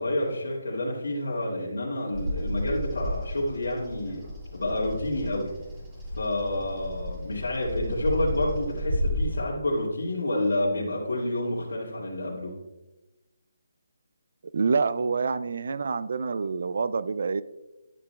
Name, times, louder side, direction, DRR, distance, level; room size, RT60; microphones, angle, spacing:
voice 1, 0.0-4.3 4.5-5.5 6.2-12.5, left 1 dB, 90° left, -7 dB, 2.2 m, -29 dB
Bird vocalization bird call bird song, 2.1-9.4, equal, 15° right, 1.7 m, -32 dB
voice 2, 14.5-17.4, right 4 dB, 55° right, 16 dB, 0.3 m, -27 dB
11.5 x 6.9 x 2.3 m, 1.0 s
hypercardioid pair, 170°, 0 cm